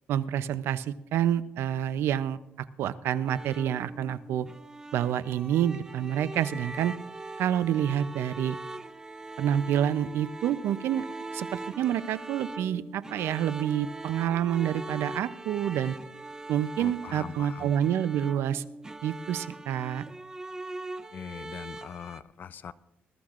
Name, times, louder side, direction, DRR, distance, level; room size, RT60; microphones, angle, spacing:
voice 1, 0.1-2.4 2.8-4.5 4.9-7.0 7.4-8.6 9.4-11.0 11.3-16.0 16.5-18.6 19.0-20.1, right 10 dB, 85° right, 15 dB, 0.5 m, -28 dB
sound 1, 3.3-22.2, right 2 dB, 15° right, 0.5 m, -41 dB
voice 2, 16.8-17.7 21.1-22.7, left 7 dB, 45° left, 16 dB, 0.4 m, -41 dB
20.5 x 13.0 x 2.5 m, 0.89 s
cardioid pair, 125°, 4 cm